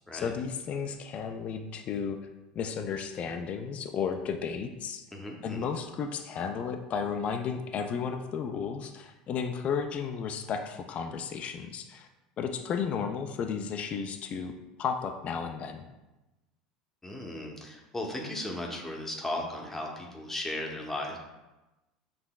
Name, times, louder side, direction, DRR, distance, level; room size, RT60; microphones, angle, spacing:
voice 1, 0.1-2.2 2.6-5.0 5.4-12.1 12.4-14.5 14.8-15.8, left 6 dB, 40° left, 6 dB, 0.4 m, -33 dB
voice 2, 5.1-5.7 17.0-21.2, left 1 dB, 10° left, 0 dB, 0.9 m, -36 dB
6.2 x 3.3 x 2.3 m, 1.0 s
hypercardioid pair, 85°, 3 cm